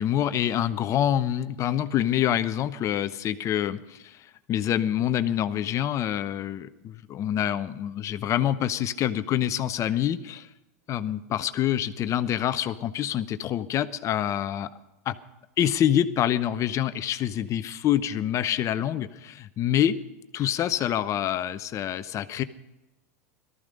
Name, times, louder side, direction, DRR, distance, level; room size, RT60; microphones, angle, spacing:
voice 1, 0.0-10.5 10.9-14.7 15.1-15.2 15.6-20.0 20.3-22.4, left 11 dB, 35° left, 12 dB, 0.9 m, -26 dB
18.0 x 14.0 x 5.3 m, 0.98 s
hypercardioid pair, 105°, 9 cm